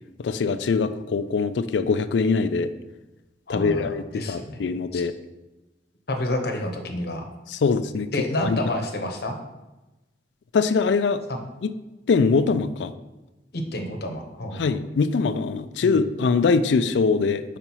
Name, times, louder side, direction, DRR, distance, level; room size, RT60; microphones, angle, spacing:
voice 1, 0.2-2.7 3.5-5.1 7.5-8.1 8.4-8.6 10.5-11.2 11.6-11.7 12.1-12.9 14.6-17.6, left 4 dB, 90° left, 12 dB, 0.4 m, -22 dB
voice 2, 3.5-5.0 6.1-7.2 8.1-9.4 11.3-11.4 13.5-14.7 15.8-16.0, left 1 dB, 65° left, 4 dB, 0.9 m, -29 dB
5.5 x 5.0 x 4.5 m, 1.1 s
head